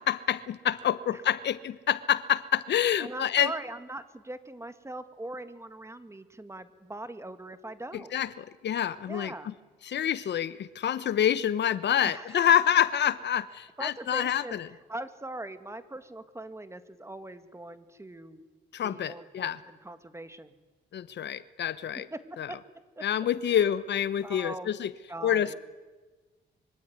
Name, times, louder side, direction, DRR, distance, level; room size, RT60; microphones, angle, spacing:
voice 1, 0.0-3.5 8.1-9.5 9.8-14.7 18.7-19.6 20.9-22.1 22.4-22.5 23.0-24.9 25.2-25.5, left 10 dB, 60° left, 15 dB, 1.0 m, -27 dB
voice 2, 3.0-8.1 9.1-9.5 12.0-12.5 13.8-14.6 14.9-18.4 18.8-20.5 22.1-22.6 23.0-23.1 23.5-23.6 24.2-24.7 25.1-25.5, right 2 dB, 15° right, 10 dB, 2.2 m, -41 dB
25.5 x 24.0 x 9.7 m, 1.3 s
cardioid pair, 90°, 20 cm